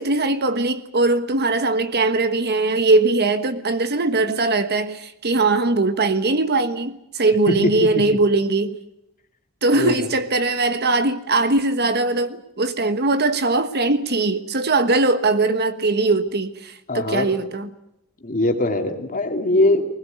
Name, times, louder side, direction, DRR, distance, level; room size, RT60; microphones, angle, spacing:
voice 1, 0.0-8.8 9.6-17.7, right 3 dB, 50° right, 1.3 m, -20 dB
voice 2, 7.5-8.2 9.7-10.1 16.9-17.3 18.2-19.9, left 1 dB, 40° left, 2.8 m, -21 dB
20.5 x 20.0 x 9.3 m
head